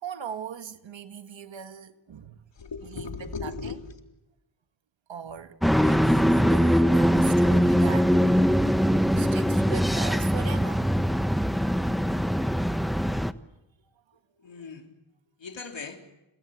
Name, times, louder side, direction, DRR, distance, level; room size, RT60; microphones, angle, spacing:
voice 1, 0.0-2.4 2.9-3.1 3.4-3.5 5.1-8.1 9.2-10.9, right 7 dB, 70° right, 1.7 m, -39 dB
voice 2, 2.5-4.0 14.4-14.9 15.4-16.0, left 4 dB, 65° left, 3.8 m, -37 dB
sound 1, 5.6-13.3, equal, ahead, 1.1 m, -22 dB
29.5 x 20.5 x 8.4 m
cardioid pair, 60°, 47 cm